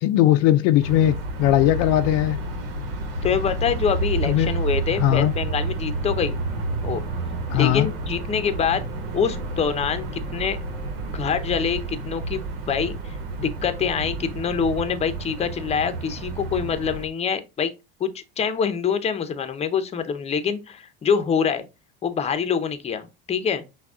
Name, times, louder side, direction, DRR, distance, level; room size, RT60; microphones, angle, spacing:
voice 1, 0.0-2.4 4.3-4.5 5.0-5.3 7.5-7.9, left 13 dB, 60° left, 0.5 m, -19 dB
sound 1, 0.8-17.1, right 2 dB, 80° right, 1.2 m, -30 dB
voice 2, 3.2-6.4 6.8-7.0 7.5-8.9 9.1-10.6 11.1-17.7 18.0-21.6 22.0-23.6, left 7 dB, 20° left, 0.7 m, -25 dB
5.9 x 2.3 x 3.6 m
supercardioid pair, 115°, 29 cm